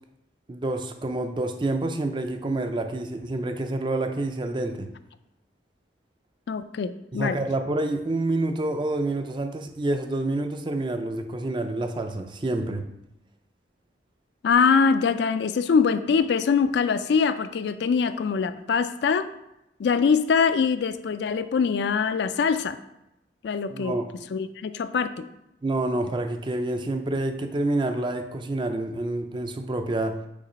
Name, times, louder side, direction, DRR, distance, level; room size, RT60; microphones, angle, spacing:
voice 1, 0.5-4.9 7.1-12.9 23.7-24.1 25.6-30.2, right 2 dB, 25° right, 6 dB, 0.4 m, -28 dB
voice 2, 6.5-7.4 14.4-19.3 19.8-22.8 23.4-24.0 24.3-25.3, left 5 dB, 65° left, 12 dB, 0.3 m, -23 dB
6.8 x 3.0 x 5.1 m, 0.86 s
head